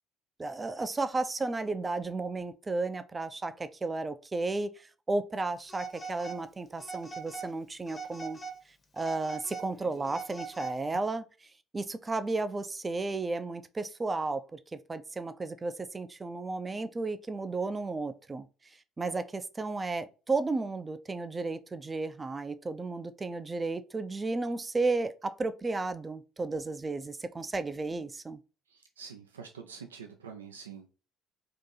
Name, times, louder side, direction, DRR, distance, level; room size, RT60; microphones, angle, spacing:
voice 1, 0.4-8.4 8.9-18.5 19.0-28.4, right 3 dB, 25° right, 0.4 m, -33 dB
Telephone, 5.7-6.4 6.8-7.5 7.9-8.6 9.0-11.0, right 4 dB, 30° left, 0.9 m, -42 dB
voice 2, 28.7-30.9, right 6 dB, 85° right, 0.4 m, -46 dB
2.8 x 2.6 x 3.9 m
hypercardioid pair, 55°, 0 cm